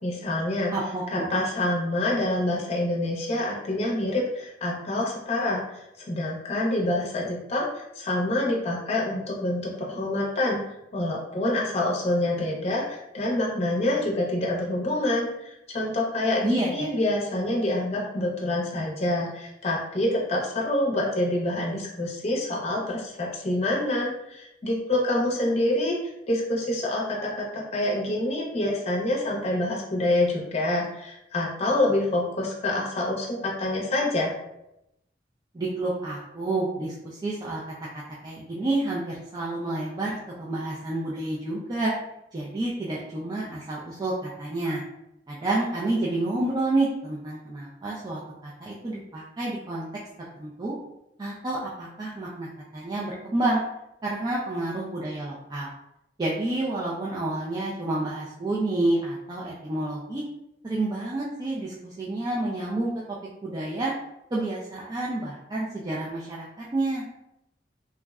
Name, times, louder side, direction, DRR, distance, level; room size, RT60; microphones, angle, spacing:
voice 1, 0.0-0.7 1.1-10.6 10.9-34.3, left 1 dB, 35° left, -3 dB, 0.6 m, -26 dB
voice 2, 0.7-1.3 16.4-16.9 35.5-37.6 37.9-41.9 42.3-44.8 45.3-49.9 50.4-50.7 51.2-52.5 52.7-53.6 54.0-55.7 56.2-60.2 60.6-62.9 63.4-63.9 64.3-67.0, right 2 dB, 20° right, -6 dB, 0.3 m, -29 dB
3.4 x 2.0 x 2.3 m, 0.85 s
head